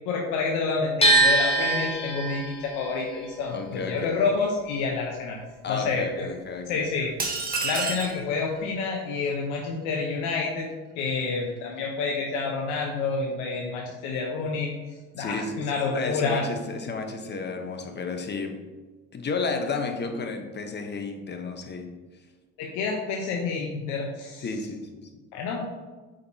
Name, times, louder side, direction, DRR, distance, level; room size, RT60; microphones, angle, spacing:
voice 1, 0.1-5.4 5.7-6.3 6.7-7.1 7.6-10.7 11.0-14.8 15.1-16.5 22.6-24.5 25.3-25.7, left 4 dB, 80° left, -1 dB, 0.9 m, -28 dB
sound 1, 1.0-7.0 7.3-8.6, right 2 dB, 20° left, 1.8 m, -26 dB
voice 2, 3.5-4.2 5.6-6.9 15.2-18.6 19.1-21.9 24.4-25.1, left 4 dB, 35° left, 5 dB, 1.0 m, -32 dB
sound 2, 7.2-8.2, right 4 dB, 30° right, 1.4 m, -29 dB
8.4 x 5.1 x 2.8 m, 1.3 s
supercardioid pair, 85°, 30 cm